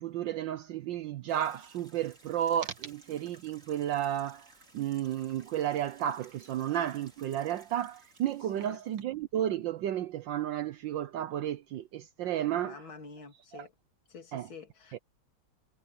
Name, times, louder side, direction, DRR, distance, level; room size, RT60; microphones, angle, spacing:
voice 1, 0.0-12.8 13.5-13.7 14.3-14.5 14.9-15.0, right 11 dB, 70° right, 1.4 m, -32 dB
sound 1, 1.3-9.0, right 2 dB, 35° right, 5.2 m, -59 dB
voice 2, 12.6-13.7 14.1-15.0, left 4 dB, 75° left, 3.5 m, -48 dB
omnidirectional pair, 2.2 m